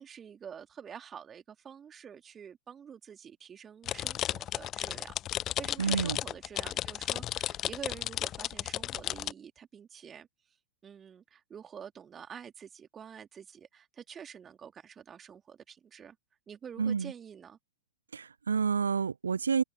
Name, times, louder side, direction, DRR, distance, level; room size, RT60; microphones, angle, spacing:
voice 1, 0.0-5.2 5.6-10.3 10.8-16.2 16.5-17.6, right 7 dB, 20° right, 3.2 m, -47 dB
sound 1, 3.9-9.3, left 12 dB, 30° left, 0.7 m, -34 dB
voice 2, 5.8-6.2 16.8-17.1 18.1-19.6, right 6 dB, 75° right, 0.4 m, -29 dB
figure-of-eight pair, 90°, 0 cm